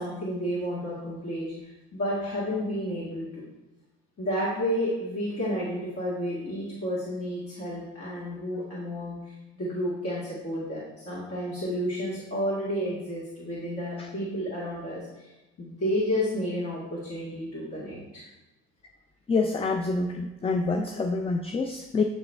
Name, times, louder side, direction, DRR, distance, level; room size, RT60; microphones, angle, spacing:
voice 1, 0.0-3.5 4.2-15.3 15.6-18.2, equal, 40° left, -7 dB, 2.0 m, -31 dB
voice 2, 19.3-22.0, left 3 dB, 15° left, 5 dB, 0.4 m, -27 dB
8.2 x 3.7 x 3.5 m, 1.0 s
hypercardioid pair, 60°, 37 cm